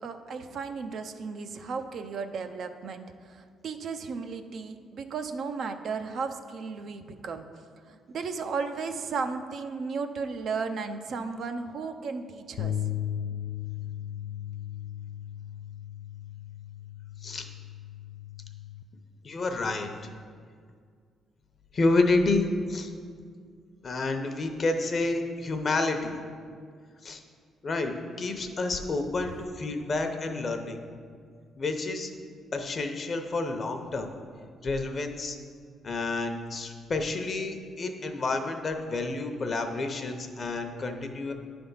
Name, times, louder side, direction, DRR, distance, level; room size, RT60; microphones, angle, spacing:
voice 1, 0.0-7.5 7.9-12.8, right 5 dB, 65° right, 7 dB, 0.5 m, -35 dB
sound 1, 12.6-18.8, left 11 dB, 80° left, 0.3 m, -36 dB
voice 2, 19.2-19.9 21.7-22.9 23.8-26.2 27.0-27.2 27.6-30.8 31.6-32.1 32.5-34.1 34.6-35.4 35.8-41.3, left 3 dB, 45° left, 5 dB, 0.8 m, -29 dB
10.0 x 3.5 x 5.5 m, 2.1 s
cardioid pair, 90°, 0 cm